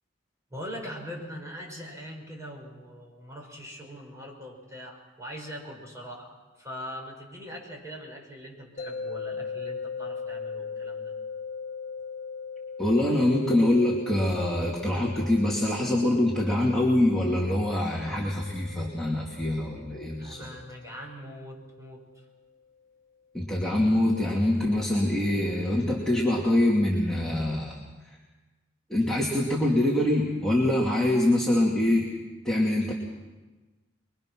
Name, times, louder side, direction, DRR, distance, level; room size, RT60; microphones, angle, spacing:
voice 1, 0.5-11.1 20.2-22.2, equal, 15° right, 0 dB, 5.5 m, -42 dB
sound 1, 8.8-21.8, left 5 dB, 45° left, 6.5 m, -40 dB
voice 2, 12.8-20.5 23.3-27.8 28.9-32.1 32.4-32.9, left 1 dB, 5° left, -5 dB, 2.5 m, -24 dB
25.5 x 22.5 x 6.2 m, 1.2 s
head